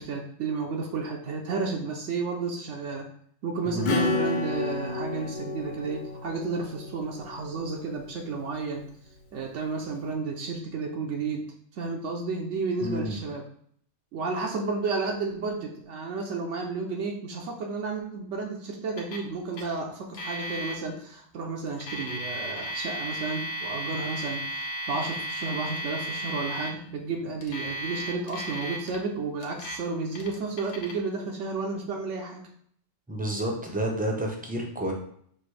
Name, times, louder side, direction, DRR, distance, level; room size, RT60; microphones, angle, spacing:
voice 1, 0.0-3.1 3.4-8.8 9.3-13.4 14.1-32.4, right 4 dB, 80° right, 1 dB, 1.0 m, -32 dB
voice 2, 3.7-4.0 12.8-13.2 33.1-34.9, right 1 dB, 10° right, 0 dB, 0.5 m, -30 dB
Acoustic guitar / Strum, 3.8-8.1, left 3 dB, 55° left, 0.6 m, -31 dB
Alarm, 19.0-19.3 19.5-19.6 20.1-20.7 21.7-26.7 27.4-29.0 29.4-29.8 30.1-30.9, right 1 dB, 85° left, 1.1 m, -35 dB
5.9 x 2.6 x 3.2 m, 0.64 s
omnidirectional pair, 1.2 m